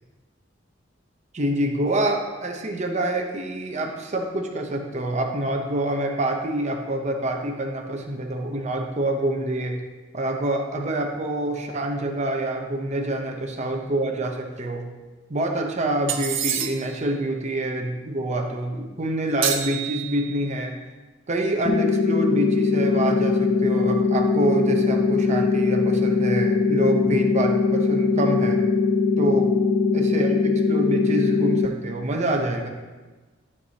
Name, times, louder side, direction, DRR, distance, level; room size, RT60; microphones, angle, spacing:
voice 1, 1.3-9.8 10.1-14.9 15.3-20.8 21.3-28.6 29.2-29.5 29.9-32.7, right 1 dB, 40° right, 2 dB, 0.8 m, -26 dB
sound 1, 16.1-17.0 19.4-20.5, right 9 dB, 90° right, 0.7 m, -28 dB
sound 2, 21.7-31.7, left 4 dB, 35° left, 0.4 m, -21 dB
12.0 x 4.8 x 2.8 m, 1.2 s
head